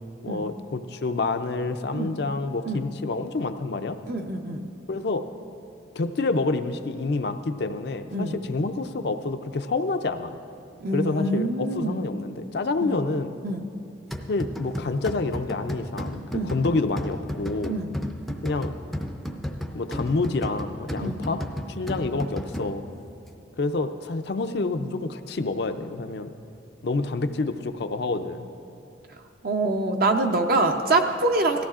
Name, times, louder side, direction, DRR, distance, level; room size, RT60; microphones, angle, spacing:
voice 1, 0.2-4.0 4.9-5.3 6.0-10.4 10.9-13.3 14.3-17.8 18.4-18.7 19.7-21.4 21.7-22.9 23.6-26.3 26.8-28.5, left 3 dB, 60° left, 8 dB, 0.4 m, -28 dB
voice 2, 4.1-4.7 8.1-8.4 10.8-12.1 12.8-13.0 13.4-13.6 16.3-16.5 17.7-17.9 21.0-21.2 29.4-31.6, right 2 dB, 50° right, 4 dB, 0.5 m, -25 dB
sound 1, 14.1-23.0, equal, ahead, 0.4 m, -34 dB
17.5 x 14.0 x 2.4 m, 2.6 s
head